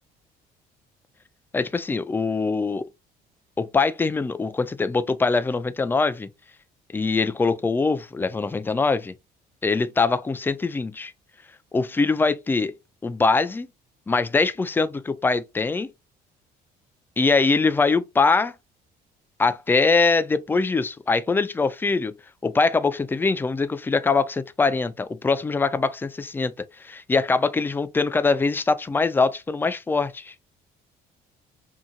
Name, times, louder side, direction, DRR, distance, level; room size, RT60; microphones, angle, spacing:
voice 1, 1.5-2.9 3.6-6.3 6.9-9.1 9.6-11.1 11.7-12.7 13.0-13.7 14.1-15.9 17.2-18.5 19.4-22.1 22.4-26.5 26.8-30.3, left 4 dB, 10° left, 0.3 m, -23 dB
2.8 x 2.7 x 2.5 m
cardioid pair, 110°, 17 cm